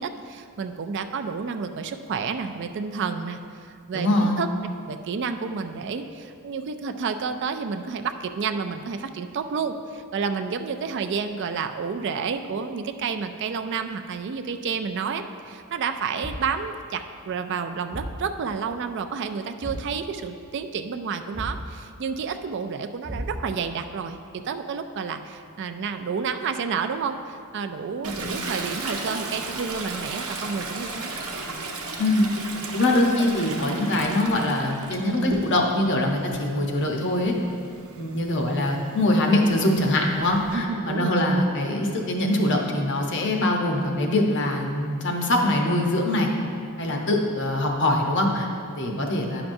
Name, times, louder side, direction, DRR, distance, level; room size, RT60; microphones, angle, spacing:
voice 1, 0.0-3.4 3.9-31.1 40.5-41.2 48.7-49.0, right 5 dB, 50° right, 7 dB, 0.3 m, -30 dB
voice 2, 3.9-4.4 32.0-32.3 32.7-37.4 38.0-46.3 46.8-49.4, left 1 dB, 55° left, 1 dB, 0.8 m, -23 dB
Thump thud, 16.2-16.6 17.9-18.3 19.6-20.0 21.3-21.7 23.0-23.6, right 1 dB, 30° right, 1.0 m, -34 dB
Toilet flush, 28.0-35.8 36.2-40.5, right 2 dB, 80° right, 0.8 m, -35 dB
10.5 x 5.9 x 2.6 m, 2.3 s
head